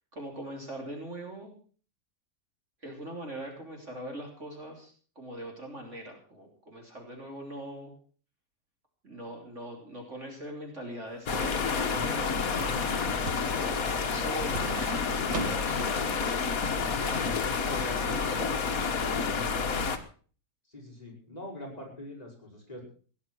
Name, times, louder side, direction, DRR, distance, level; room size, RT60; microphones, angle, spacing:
voice 1, 0.1-1.5 2.8-7.9 9.0-14.8 15.4-16.1 16.7-19.6, right 1 dB, 45° right, 1 dB, 3.7 m, -42 dB
sound 1, 11.1-16.2 16.5-16.6, right 3 dB, 80° right, 2.4 m, -40 dB
sound 2, 11.3-20.0, left 5 dB, 55° left, 1.8 m, -29 dB
voice 2, 20.7-22.8, left 1 dB, 20° left, -2 dB, 5.6 m, -44 dB
16.5 x 11.0 x 6.2 m, 0.42 s
omnidirectional pair, 1.8 m